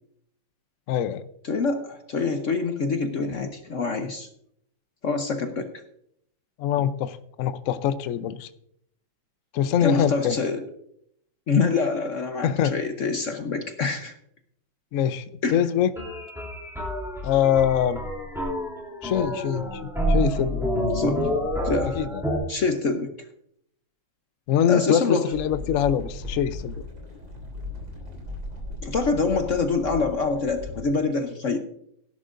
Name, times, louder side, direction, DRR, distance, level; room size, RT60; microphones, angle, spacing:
voice 1, 0.9-1.2 6.6-8.5 9.5-10.4 12.4-12.7 14.9-15.2 15.5-15.9 17.2-18.0 19.0-20.7 22.0-22.2 24.5-26.8, left 9 dB, 75° left, 12 dB, 0.7 m, -24 dB
voice 2, 1.4-4.3 5.0-5.7 9.8-10.6 11.5-14.2 15.4-15.7 20.9-21.2 21.6-22.0 22.5-23.1 24.7-25.2 28.8-31.6, left 4 dB, 50° left, 6 dB, 1.0 m, -25 dB
sound 1, 16.0-22.4, equal, ahead, 3.1 m, -28 dB
sound 2, 25.3-30.8, left 2 dB, 65° right, 3.9 m, -37 dB
17.0 x 11.0 x 2.6 m, 0.72 s
omnidirectional pair, 2.1 m